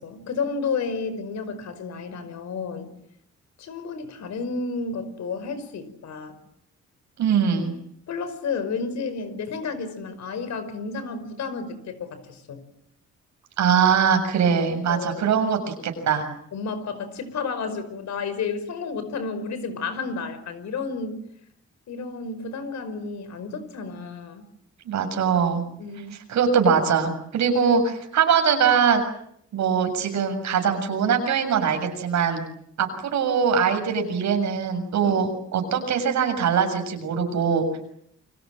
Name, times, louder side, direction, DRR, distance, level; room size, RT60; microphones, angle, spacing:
voice 1, 0.0-2.9 3.6-6.4 8.1-12.6 14.9-15.2 16.5-21.2 21.9-24.4 25.8-26.2 35.0-35.3, left 4 dB, 70° left, 12 dB, 5.3 m, -31 dB
voice 2, 7.2-7.7 13.6-16.3 24.9-25.6 26.3-29.0 29.5-32.4 32.8-37.7, right 6 dB, 70° right, 6 dB, 7.0 m, -22 dB
29.5 x 25.0 x 7.7 m, 0.73 s
wide cardioid pair, 165°, 29 cm